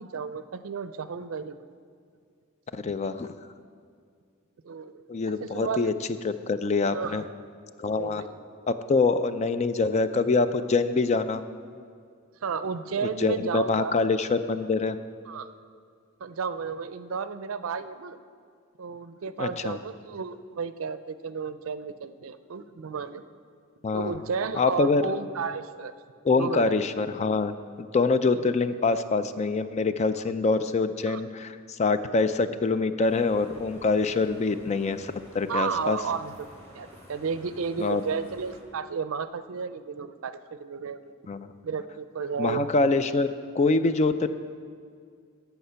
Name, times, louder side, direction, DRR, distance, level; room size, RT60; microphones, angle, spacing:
voice 1, 0.0-1.7 4.6-5.0 5.4-5.9 6.9-7.2 8.0-8.4 12.4-14.0 15.3-15.5 16.2-18.2 18.8-23.2 23.9-25.9 26.3-26.8 28.3-28.5 31.1-31.2 35.5-36.5 36.7-41.2 41.6-42.7, right 5 dB, 80° right, 13 dB, 0.5 m, -33 dB
voice 2, 2.7-3.3 5.1-5.9 6.2-7.2 7.8-8.2 8.7-11.4 13.0-15.0 19.4-19.8 23.8-24.1 24.5-25.0 26.2-27.5 27.8-36.0 37.8-38.0 41.3-41.5 42.4-43.3 43.5-44.3, left 3 dB, 35° left, 11 dB, 0.4 m, -25 dB
sound 1, 33.0-38.6, left 1 dB, 15° left, 2.2 m, -50 dB
14.5 x 5.8 x 5.6 m, 2.2 s
head